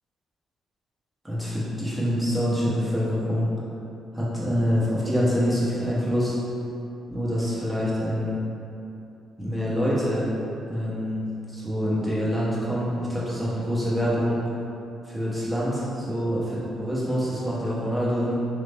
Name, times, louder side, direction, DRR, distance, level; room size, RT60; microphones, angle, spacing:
voice 1, 1.2-3.5 4.1-6.3 7.1-8.4 9.4-10.3 10.7-14.4 15.1-18.3, equal, 10° right, -8 dB, 1.3 m, -26 dB
3.5 x 3.0 x 4.3 m, 2.8 s
cardioid pair, 90°, 0 cm